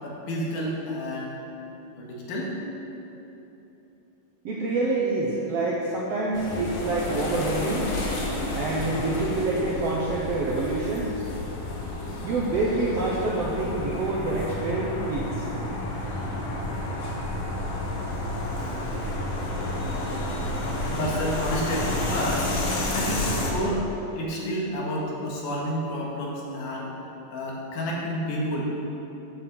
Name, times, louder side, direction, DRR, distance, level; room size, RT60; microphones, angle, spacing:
voice 1, 0.0-1.4 2.0-2.6 18.6-18.9 20.9-22.5 22.9-23.9 24.2-26.9 27.3-28.7, equal, 65° left, -4 dB, 3.2 m, -30 dB
voice 2, 4.4-7.9 8.5-11.1 12.2-15.5 19.8-20.4, right 2 dB, 65° right, -3 dB, 1.6 m, -27 dB
sound 1, 6.3-23.5, left 1 dB, 50° left, 2.2 m, -30 dB
13.5 x 6.9 x 6.2 m, 3.0 s
omnidirectional pair, 3.9 m